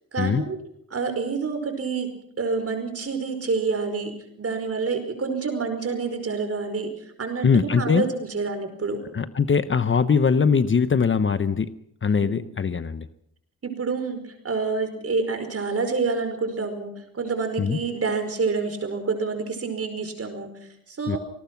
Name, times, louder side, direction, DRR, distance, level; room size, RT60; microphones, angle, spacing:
voice 1, 0.1-0.6 0.9-2.1 2.4-6.9 7.2-7.5 7.8-9.0 12.2-12.5 13.6-14.2 14.4-20.5 20.9-21.2, right 4 dB, 45° right, 7 dB, 5.0 m, -27 dB
voice 2, 7.4-8.0 9.1-11.7 12.0-13.1 17.6-17.8 21.1-21.2, left 6 dB, 35° left, 12 dB, 1.0 m, -21 dB
27.0 x 19.0 x 6.0 m, 0.72 s
wide cardioid pair, 125°, 34 cm